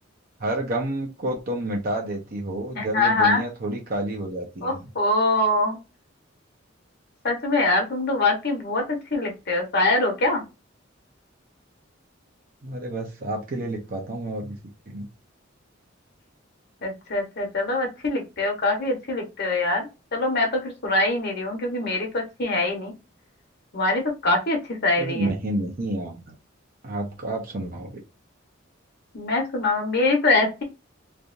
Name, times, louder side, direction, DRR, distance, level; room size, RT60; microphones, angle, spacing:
voice 1, 0.4-4.8 12.6-14.6 14.9-15.1 25.0-26.2 26.8-28.0, right 1 dB, 50° right, 0 dB, 0.9 m, -29 dB
voice 2, 2.8-3.4 4.6-5.8 7.2-10.4 16.8-22.9 23.7-25.3 29.1-30.6, left 2 dB, 55° left, 2 dB, 1.4 m, -24 dB
3.3 x 2.7 x 2.6 m, 0.27 s
head